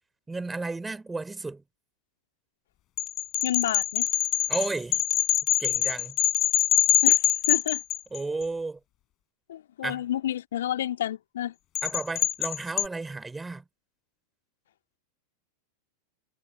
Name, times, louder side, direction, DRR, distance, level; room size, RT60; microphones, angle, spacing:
voice 1, 0.3-1.6 4.5-5.0 5.6-6.2 8.1-8.8 9.8-10.0 11.8-13.6, right 3 dB, 10° right, 6.0 m, -33 dB
sound 1, 3.0-8.4 11.8-12.9, left 14 dB, 35° left, 5.1 m, -24 dB
voice 2, 3.4-4.1 7.0-7.8 9.5-11.5, left 11 dB, 60° left, 2.3 m, -30 dB
figure-of-eight pair, 90°, 0 cm